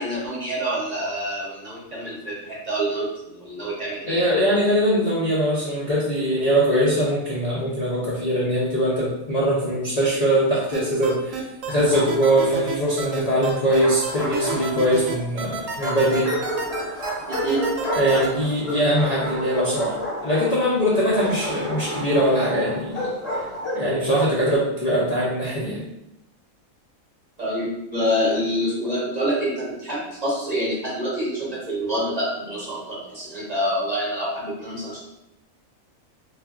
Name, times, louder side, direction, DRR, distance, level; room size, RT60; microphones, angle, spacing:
voice 1, 0.0-4.2 17.3-17.6 27.4-35.0, equal, 40° right, -6 dB, 0.6 m, -27 dB
voice 2, 4.1-16.3 17.9-20.0 20.2-23.1 23.7-25.8, equal, 80° left, -7 dB, 0.3 m, -22 dB
sound 1, 10.7-18.3, right 4 dB, 70° right, 0.9 m, -30 dB
Bark, 11.7-12.6 13.5-15.1 15.8-23.9, equal, 30° left, 0.7 m, -31 dB
3.4 x 2.4 x 2.3 m, 0.86 s
omnidirectional pair, 1.5 m